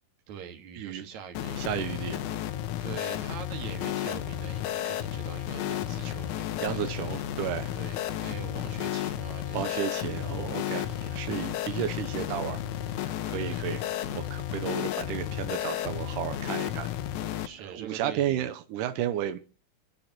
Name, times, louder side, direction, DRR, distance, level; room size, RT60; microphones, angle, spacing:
voice 1, 0.3-1.7 2.8-7.2 7.7-9.8 10.8-11.2 13.4-13.6 17.4-18.5, right 7 dB, 55° right, 2.7 m, -43 dB
sound 1, 1.3-17.5, left 11 dB, 75° left, 1.8 m, -33 dB
voice 2, 1.6-2.3 6.6-7.7 9.5-12.6 13.0-16.9 17.7-19.4, right 11 dB, 80° right, 1.9 m, -33 dB
28.0 x 9.9 x 3.0 m
omnidirectional pair, 4.5 m